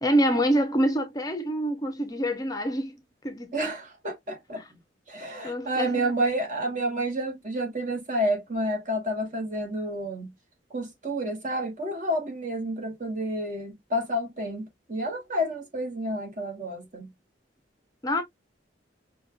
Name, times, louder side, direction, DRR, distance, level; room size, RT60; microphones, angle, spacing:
voice 1, 0.0-3.0 3.2-3.5 5.4-6.0 18.0-18.2, equal, 20° left, 0.5 m, -26 dB
voice 2, 3.5-4.6 5.1-10.3 10.7-17.1, right 1 dB, 45° right, 1.3 m, -30 dB
5.2 x 2.2 x 2.2 m
head